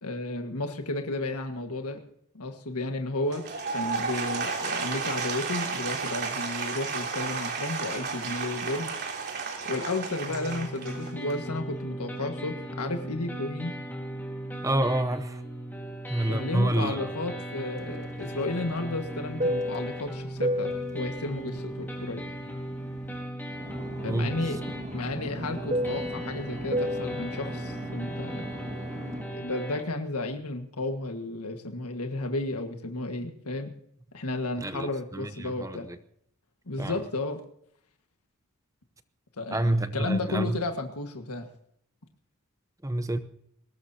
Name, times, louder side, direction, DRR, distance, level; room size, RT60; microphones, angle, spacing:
voice 1, 0.0-2.0 2.4-3.4 3.7-9.0 9.7-13.8 16.3-22.2 24.0-24.6 24.9-28.5 29.3-33.7 34.1-35.9 36.7-37.4 39.4-41.5, left 2 dB, 85° left, 1.7 m, -33 dB
Applause / Crowd, 3.2-11.5, right 5 dB, 50° right, 3.4 m, -33 dB
sound 1, 10.3-29.8, right 1 dB, 10° left, 4.0 m, -37 dB
voice 2, 14.6-15.4 16.1-17.0 24.0-24.3 34.6-35.8 36.8-36.9 39.5-40.6 42.8-43.2, right 1 dB, 15° right, 0.8 m, -28 dB
Fixed-wing aircraft airplane, 17.8-23.2 23.5-29.3, equal, 30° right, 1.8 m, -34 dB
21.5 x 19.0 x 2.8 m
head